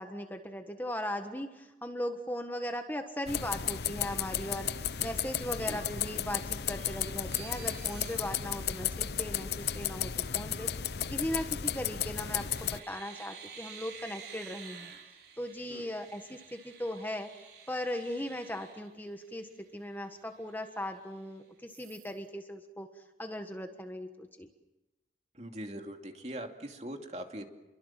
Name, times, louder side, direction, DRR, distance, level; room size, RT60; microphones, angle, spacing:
voice 1, 0.0-4.7 5.0-14.9 15.4-17.3 17.7-24.5, left 1 dB, 10° left, 5 dB, 1.4 m, -38 dB
sound 1, 3.3-12.8, left 9 dB, 65° left, 0.8 m, -34 dB
sound 2, 6.7-9.7 11.6-11.9 12.3-19.6 20.0-20.1 20.4-21.3 21.7-22.2, right 7 dB, 75° right, 4.2 m, -51 dB
voice 2, 25.3-27.4, right 1 dB, 40° right, 4 dB, 2.7 m, -41 dB
29.5 x 23.5 x 7.5 m, 1.0 s
head